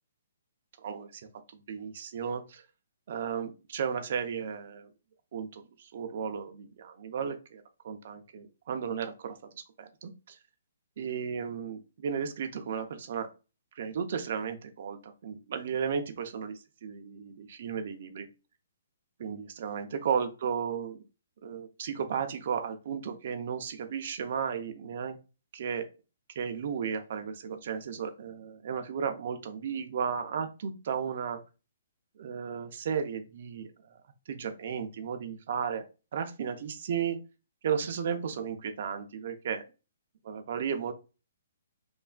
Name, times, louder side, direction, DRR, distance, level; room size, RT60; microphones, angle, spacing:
voice 1, 0.8-1.2 1.5-2.6 3.1-4.9 5.3-10.4 11.0-13.3 13.8-18.3 19.2-21.0 21.4-25.2 25.5-25.9 26.4-31.4 32.2-34.0 34.3-35.8 36.1-37.2 37.6-39.6 40.2-40.9, right 7 dB, 50° right, 7 dB, 0.4 m, -34 dB
3.2 x 2.1 x 2.3 m, 0.30 s
hypercardioid pair, 165°, 0 cm